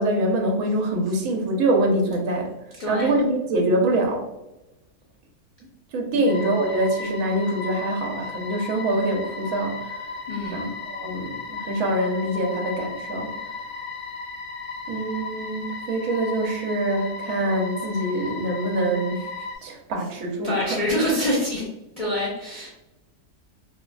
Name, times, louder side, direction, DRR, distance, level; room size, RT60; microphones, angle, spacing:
voice 1, 0.0-2.5 2.9-4.3 5.9-10.1 10.5-13.3 14.9-19.3 19.6-20.9, right 1 dB, 65° right, 1 dB, 1.0 m, -24 dB
voice 2, 2.8-3.2 6.1-6.3 10.3-10.6 20.4-21.7 22.0-22.7, left 1 dB, 50° left, -6 dB, 0.4 m, -26 dB
sound 1, 6.3-19.6, left 4 dB, 85° left, 1.1 m, -35 dB
3.1 x 2.4 x 2.2 m, 0.94 s
omnidirectional pair, 1.6 m